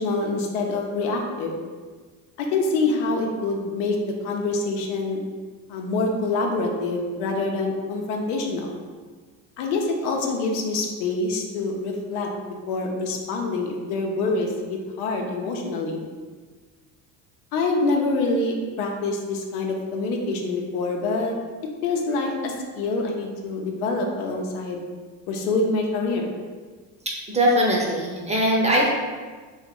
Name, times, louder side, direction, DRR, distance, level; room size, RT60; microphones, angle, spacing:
voice 1, 0.0-1.5 2.4-5.2 5.7-8.8 9.6-12.3 12.7-16.0 17.5-21.3 21.8-24.8 25.3-26.3, left 3 dB, 85° left, 1 dB, 0.7 m, -26 dB
voice 2, 27.3-28.9, equal, 15° right, -3 dB, 0.6 m, -20 dB
2.9 x 2.3 x 3.6 m, 1.5 s
supercardioid pair, 95°, 42 cm